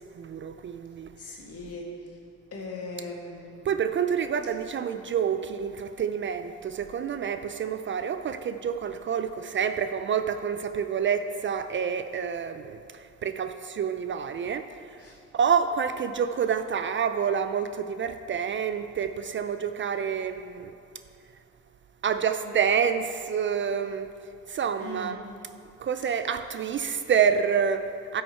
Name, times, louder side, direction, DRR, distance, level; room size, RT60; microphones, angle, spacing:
voice 1, 0.0-1.4 3.6-20.7 22.0-24.1 24.5-25.2 25.8-28.2, right 7 dB, 40° right, 0.4 m, -28 dB
voice 2, 1.2-2.2 2.5-3.5 15.0-15.2 24.8-25.1, left 2 dB, 50° left, 2.0 m, -39 dB
12.0 x 6.4 x 4.4 m
cardioid pair, 90°, 30 cm